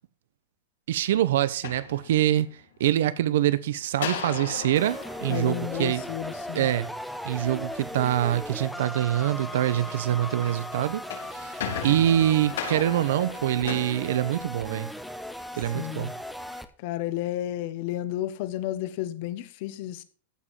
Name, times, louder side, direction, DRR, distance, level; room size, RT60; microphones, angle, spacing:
voice 1, 0.9-2.5 2.8-6.0 6.5-6.9 7.2-11.0 11.3-14.9 15.6-16.1, right 12 dB, 70° right, 0.9 m, -25 dB
sound 1, 1.4-2.6 4.0-6.4 10.8-14.9, left 7 dB, 85° left, 4.5 m, -37 dB
sound 2, 4.7-16.6, equal, ahead, 0.8 m, -37 dB
voice 2, 5.3-6.7 15.7-16.1 16.8-20.0, left 13 dB, 45° left, 1.2 m, -32 dB
15.0 x 5.3 x 7.4 m
supercardioid pair, 170°, 0 cm